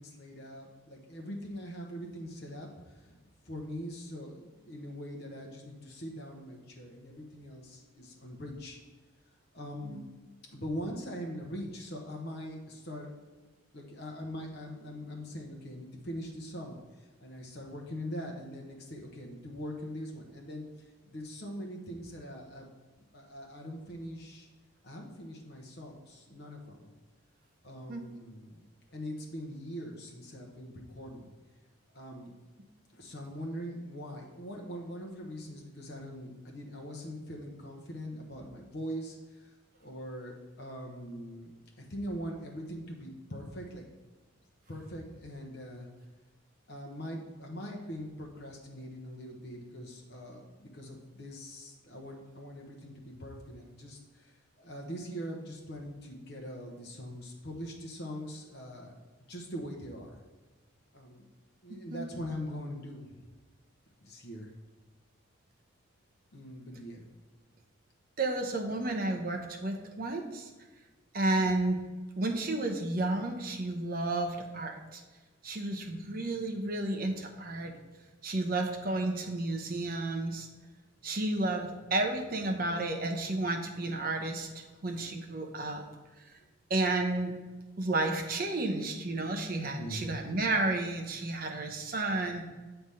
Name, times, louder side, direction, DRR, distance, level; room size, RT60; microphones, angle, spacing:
voice 1, 0.0-3.2 3.4-8.8 9.5-10.0 10.5-13.1 13.7-20.7 21.1-22.7 23.1-24.5 24.8-26.9 27.6-28.6 28.9-31.3 31.9-32.3 32.9-39.5 39.8-43.9 44.7-45.9 46.7-58.9 59.3-60.2 60.9-61.2 61.6-63.2 64.0-64.5 66.3-67.1 75.9-76.0 89.7-90.1, equal, 50° left, 0 dB, 0.9 m, -42 dB
voice 2, 68.2-70.5 71.1-71.8 72.2-75.0 75.4-77.7 78.2-80.5 81.0-84.5 84.8-85.8 86.7-87.3 87.8-92.4, right 2 dB, 45° right, 3 dB, 0.8 m, -32 dB
7.8 x 3.4 x 5.5 m, 1.2 s
head